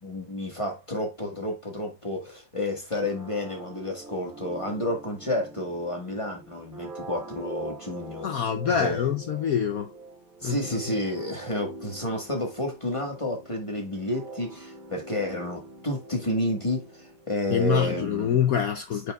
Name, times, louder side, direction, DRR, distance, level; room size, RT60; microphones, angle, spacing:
voice 1, 0.0-9.1 10.4-18.4, left 1 dB, 15° left, 1.4 m, -30 dB
sound 1, 3.0-17.6, right 2 dB, 45° right, 3.0 m, -43 dB
voice 2, 8.2-9.9 10.4-10.8 17.5-19.1, left 8 dB, 70° left, 0.8 m, -25 dB
8.8 x 4.8 x 2.3 m
omnidirectional pair, 2.1 m